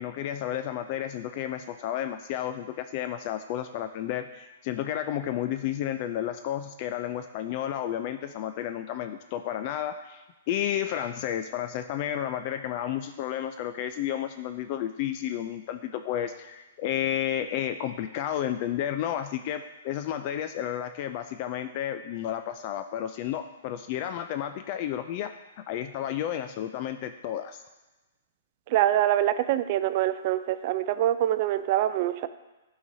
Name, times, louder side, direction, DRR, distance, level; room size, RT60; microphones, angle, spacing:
voice 1, 0.0-25.3 25.7-27.6, left 11 dB, 45° left, 8 dB, 0.3 m, -32 dB
voice 2, 28.7-32.3, right 12 dB, 45° right, 12 dB, 0.4 m, -25 dB
11.0 x 4.0 x 2.7 m, 1.1 s
hypercardioid pair, 125°, 0 cm